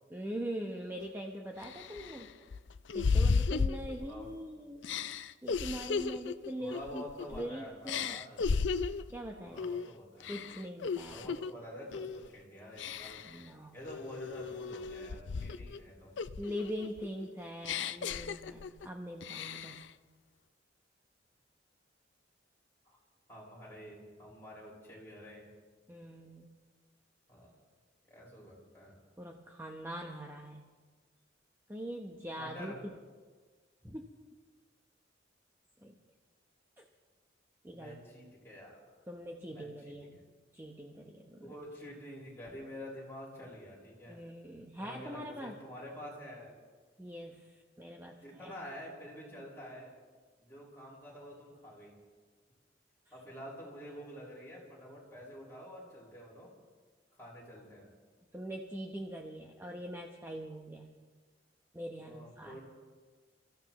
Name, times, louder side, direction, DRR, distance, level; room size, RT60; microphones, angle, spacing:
voice 1, 0.1-2.3 2.9-4.9 5.4-8.2 9.1-9.7 10.3-11.4 13.3-13.7 16.4-19.8 25.9-26.5 29.2-30.6 31.7-32.7 33.8-34.1 35.8-36.0 36.8-36.9 37.6-38.0 39.1-40.2 40.5-41.5 44.1-45.5 47.0-48.5 58.3-60.9 61.7-62.6, equal, 15° right, 1 dB, 1.0 m, -42 dB
sound 1, 1.0-1.1 1.6-4.4 4.8-7.5 7.9-9.1 9.6-9.9 10.2-11.5 11.9-12.3 12.8-13.4 13.9-15.8 16.2-18.9 19.2-19.9, left 5 dB, 80° left, 0.5 m, -34 dB
voice 2, 6.6-8.4 9.4-10.3 11.0-16.1 22.8-23.0 23.3-25.5 27.3-27.6 28.1-28.9 32.4-32.8 37.7-38.8 39.5-40.2 41.4-44.2 44.8-46.5 48.2-50.0 50.4-52.0 53.1-56.5 57.1-57.9 62.0-62.6, equal, 15° left, -6 dB, 5.5 m, -48 dB
29.5 x 15.0 x 3.1 m, 1.5 s
head